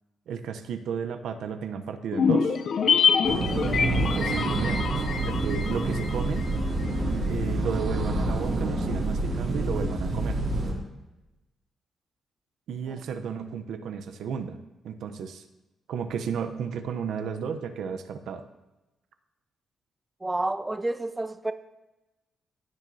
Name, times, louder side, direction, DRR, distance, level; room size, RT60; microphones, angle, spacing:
voice 1, 0.3-2.6 4.0-6.5 7.3-10.4 12.7-14.6 14.8-15.4 15.9-18.5, right 7 dB, 80° right, 9 dB, 0.7 m, -33 dB
sound 1, 2.1-6.6 6.9-7.0, left 6 dB, 60° left, 0.5 m, -25 dB
sound 2, 3.2-10.7, right 2 dB, 60° right, 2.4 m, -28 dB
voice 2, 20.2-21.5, right 2 dB, 15° right, 11 dB, 0.4 m, -29 dB
15.5 x 6.2 x 2.7 m, 1.0 s
cardioid pair, 100°, 0 cm